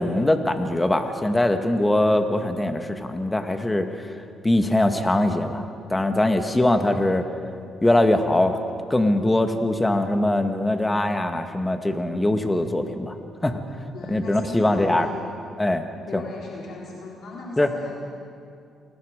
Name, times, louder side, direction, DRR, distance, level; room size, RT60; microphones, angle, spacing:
voice 1, 0.0-3.9 4.4-5.6 5.9-7.2 7.8-8.6 8.9-13.1 13.4-13.6 14.1-15.1 15.6-15.8 16.1-16.2 17.6-17.7, left 1 dB, 15° left, 6 dB, 1.8 m, -22 dB
voice 2, 13.9-15.2 16.1-18.1, left 2 dB, 65° left, -3 dB, 3.7 m, -37 dB
28.5 x 20.5 x 5.2 m, 2.4 s
cardioid pair, 90°, 0 cm